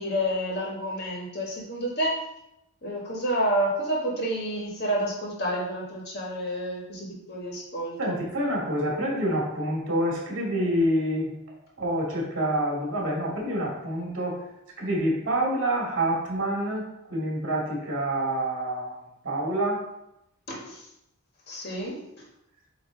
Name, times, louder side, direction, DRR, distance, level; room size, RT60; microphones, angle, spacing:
voice 1, 0.0-2.1 2.8-8.2 20.5-20.8 21.5-22.0, equal, 50° left, -2 dB, 1.6 m, -29 dB
voice 2, 8.0-11.3 11.8-14.4 14.8-19.8, right 1 dB, 60° right, -3 dB, 2.4 m, -27 dB
8.4 x 3.1 x 3.8 m, 0.84 s
head